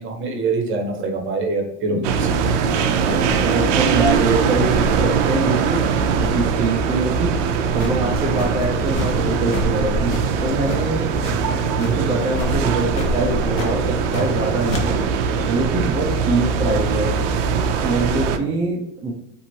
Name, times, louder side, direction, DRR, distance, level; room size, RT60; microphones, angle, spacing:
voice 1, 0.0-2.3, right 3 dB, 35° right, 2 dB, 0.8 m, -24 dB
sound 1, 2.0-18.4, right 5 dB, 85° right, 0.5 m, -21 dB
voice 2, 3.0-5.8 6.2-7.3 7.7-11.4 11.8-15.0 15.5-17.1 17.8-19.1, right 2 dB, 15° right, -2 dB, 0.3 m, -24 dB
sound 2, 7.8-9.2 9.5-9.7 10.1-11.4 11.7-12.1 12.3-12.6 12.9-13.1 13.5-14.4 14.7-14.8, left 3 dB, 60° left, 0.9 m, -30 dB
2.9 x 2.6 x 2.7 m, 0.79 s
supercardioid pair, 125°, 36 cm